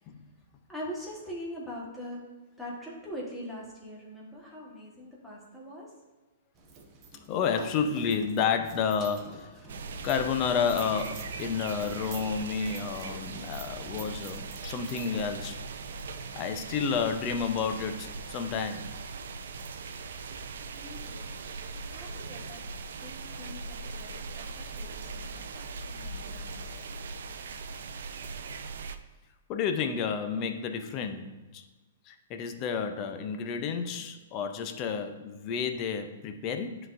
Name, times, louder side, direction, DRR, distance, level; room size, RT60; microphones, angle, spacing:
voice 1, 0.7-2.2 2.6-5.9 20.7-21.3 21.8-22.6 23.0-26.6, equal, ahead, -6 dB, 1.3 m, -42 dB
sound 1, 6.6-16.5, right 3 dB, 25° right, 0.7 m, -47 dB
voice 2, 7.3-9.5 10.0-15.6 16.3-18.9 29.5-31.6 32.1-36.8, left 6 dB, 30° left, 6 dB, 0.5 m, -30 dB
sound 2, 9.7-29.0, right 4 dB, 75° right, 0.4 m, -40 dB
11.0 x 3.9 x 2.5 m, 1.2 s
hypercardioid pair, 160°, 0 cm